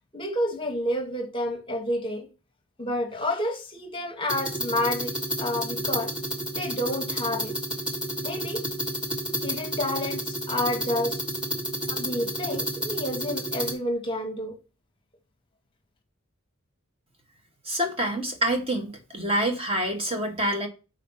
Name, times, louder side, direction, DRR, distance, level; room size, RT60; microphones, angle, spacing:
voice 1, 0.1-2.3 2.8-5.1 5.4-6.1 6.6-7.5 8.2-8.6 9.4-11.2 11.9-14.5, left 1 dB, 25° left, 1.0 m, -29 dB
sound 1, 4.3-13.7, equal, 5° right, 1.3 m, -31 dB
voice 2, 17.6-20.7, right 1 dB, 25° right, 1.1 m, -27 dB
5.0 x 4.2 x 5.4 m
head